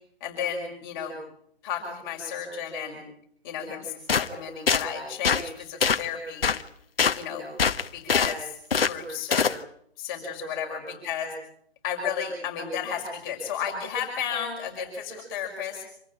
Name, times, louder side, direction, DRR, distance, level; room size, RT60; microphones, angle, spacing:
voice 1, 0.2-1.2 1.6-3.0 3.4-6.5 7.1-7.5 7.9-8.5 8.8-9.5 10.0-11.3 11.8-15.8, left 7 dB, 20° left, 1 dB, 5.7 m, -33 dB
sound 1, 4.1-4.3 4.7-4.8 5.2-5.4 5.8-6.1 6.4-6.6 7.0-7.2 7.6-8.3 8.7-8.9 9.3-9.6, left 6 dB, 65° left, 1.4 m, -23 dB
27.0 x 15.0 x 10.0 m, 0.70 s
hypercardioid pair, 160°, 32 cm